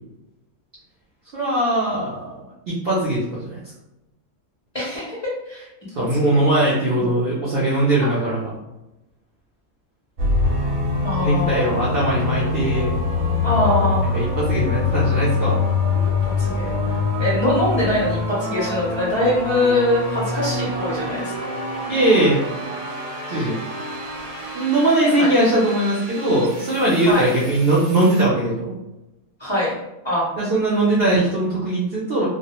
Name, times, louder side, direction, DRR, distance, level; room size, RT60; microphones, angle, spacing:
voice 1, 1.3-3.6 6.0-8.5 11.2-12.9 14.1-15.6 21.9-22.4 23.3-23.6 24.5-28.7 30.4-32.3, right 1 dB, 60° right, -6 dB, 0.6 m, -20 dB
voice 2, 4.7-5.7 6.1-6.4 7.0-7.1 11.0-11.8 13.4-14.2 16.4-21.3 25.2-25.3 27.0-27.3 29.4-29.8 30.0-30.3, left 1 dB, 35° left, -7 dB, 0.4 m, -23 dB
sound 1, 10.2-28.2, left 3 dB, 85° right, 1.0 m, -25 dB
2.2 x 2.1 x 2.8 m, 0.97 s
omnidirectional pair, 1.4 m